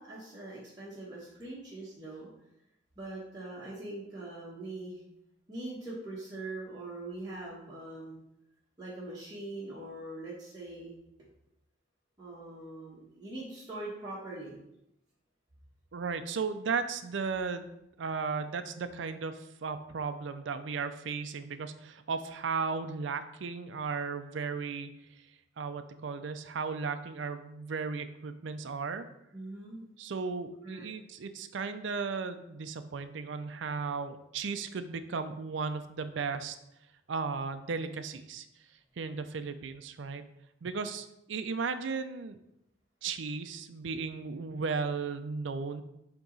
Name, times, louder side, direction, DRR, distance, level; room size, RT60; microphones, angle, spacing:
voice 1, 0.0-2.3 3.0-5.0 5.5-8.2 8.8-10.9 12.2-14.6 29.3-29.8 30.6-30.9, right 2 dB, 20° right, -9 dB, 1.2 m, -42 dB
voice 2, 15.9-17.7 18.0-24.9 25.6-29.1 30.0-36.6 37.1-38.5 39.0-40.2 40.6-42.4 43.0-45.8, right 5 dB, 80° right, 10 dB, 0.4 m, -35 dB
8.2 x 3.0 x 3.9 m, 0.84 s
head